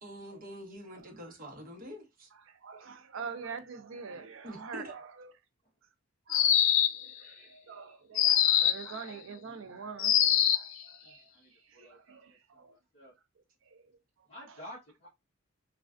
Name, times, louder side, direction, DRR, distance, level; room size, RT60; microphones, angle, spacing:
voice 1, 0.0-2.3 4.4-5.0, equal, 40° right, 0.9 m, -45 dB
voice 2, 2.6-5.1 6.3-6.6 7.0-11.2 11.8-12.8 13.7-13.8, right 5 dB, 65° right, 0.5 m, -44 dB
sound 1, 6.3-7.1 8.2-8.9 10.0-10.7, left 10 dB, 65° left, 0.3 m, -24 dB
voice 3, 11.0-12.0 12.3-13.1 14.3-15.1, equal, 30° left, 1.1 m, -51 dB
3.2 x 2.3 x 2.4 m
head